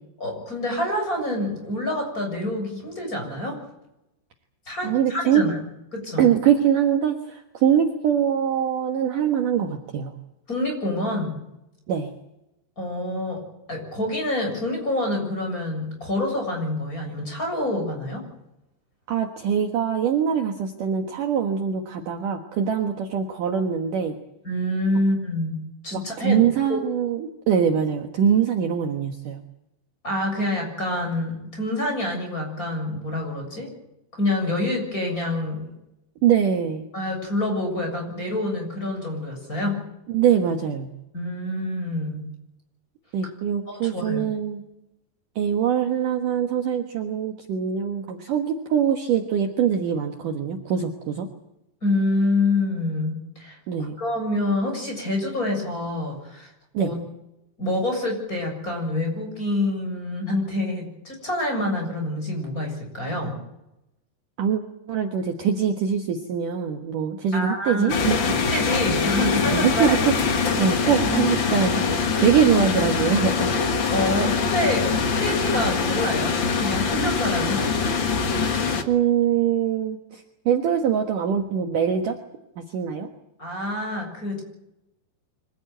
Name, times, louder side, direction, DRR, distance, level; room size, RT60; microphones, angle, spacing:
voice 1, 0.2-3.6 4.7-5.6 5.9-6.3 10.5-11.3 12.8-13.4 13.7-18.2 24.4-25.5 25.8-26.4 26.7-26.8 30.0-33.7 34.2-35.7 36.9-39.8 41.1-42.2 43.7-44.2 51.8-56.5 56.8-57.0 57.6-63.3 67.3-68.0 68.5-70.0 73.9-77.7 83.4-84.4, left 1 dB, 20° left, 2 dB, 7.4 m, -27 dB
voice 2, 4.8-5.4 6.2-10.1 11.9-12.1 19.1-24.2 25.9-29.4 36.2-36.9 40.1-40.9 43.1-44.6 45.4-51.3 53.7-54.0 56.7-56.9 64.4-64.6 64.9-68.4 69.5-70.1 70.6-71.8 72.2-73.5 78.8-82.2 82.6-83.1, right 8 dB, 60° right, 4 dB, 2.7 m, -23 dB
sound 1, 67.9-78.8, left 5 dB, 60° left, 1.2 m, -23 dB
25.5 x 17.0 x 9.3 m, 0.89 s
omnidirectional pair, 4.9 m